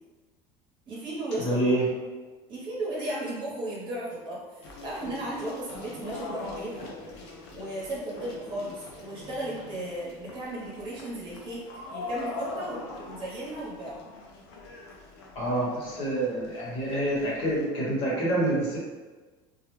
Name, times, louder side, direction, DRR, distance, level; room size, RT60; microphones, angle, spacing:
voice 1, 0.9-1.7 2.5-6.9 7.5-14.1, right 1 dB, 40° right, -6 dB, 0.8 m, -35 dB
voice 2, 1.4-1.9 15.3-18.8, right 1 dB, 50° left, -5 dB, 1.0 m, -27 dB
sound 1, 4.6-17.7, left 3 dB, 85° left, 0.5 m, -42 dB
2.3 x 2.1 x 3.0 m, 1.3 s
cardioid pair, 145°, 14 cm